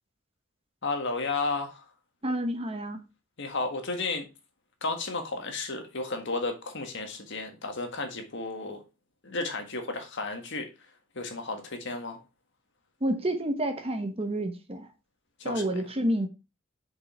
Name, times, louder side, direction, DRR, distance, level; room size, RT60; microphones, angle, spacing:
voice 1, 0.8-1.8 3.4-4.3 4.8-8.8 9.2-10.7 11.1-12.2 15.4-15.8, left 3 dB, 60° left, 1.7 m, -33 dB
voice 2, 2.2-3.0 13.0-14.9 15.4-16.3, right 1 dB, 30° right, 1.1 m, -29 dB
6.6 x 5.3 x 4.3 m
head